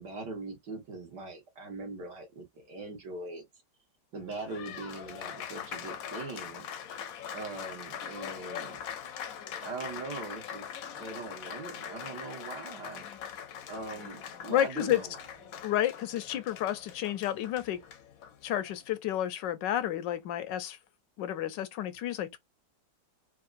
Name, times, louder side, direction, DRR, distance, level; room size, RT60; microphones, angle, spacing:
voice 1, 0.0-3.4 4.1-6.7 7.3-8.8 9.6-13.1 13.7-15.2, right 3 dB, 70° right, 2.3 m, -41 dB
Applause, 4.2-18.9, left 8 dB, 65° left, 0.9 m, -42 dB
voice 2, 14.5-15.0 15.6-17.8 18.4-20.8 21.2-22.4, left 12 dB, 85° left, 1.3 m, -31 dB
4.6 x 2.5 x 2.5 m
omnidirectional pair, 1.9 m